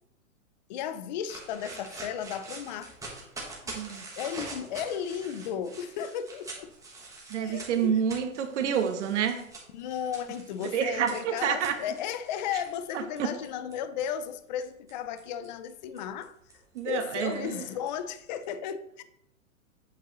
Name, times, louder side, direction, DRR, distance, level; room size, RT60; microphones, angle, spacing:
voice 1, 0.7-2.9 4.2-6.7 7.3-8.0 9.7-16.3 16.8-19.0, left 8 dB, 35° left, 11 dB, 0.4 m, -34 dB
sound 1, 1.3-14.0 14.6-18.5, right 3 dB, 10° right, 1.2 m, -45 dB
voice 2, 3.7-4.0 7.3-9.4 10.7-11.7 13.2-13.3 16.7-17.6, right 8 dB, 55° right, 7 dB, 1.0 m, -28 dB
8.1 x 5.0 x 3.0 m, 0.79 s
hypercardioid pair, 135°, 41 cm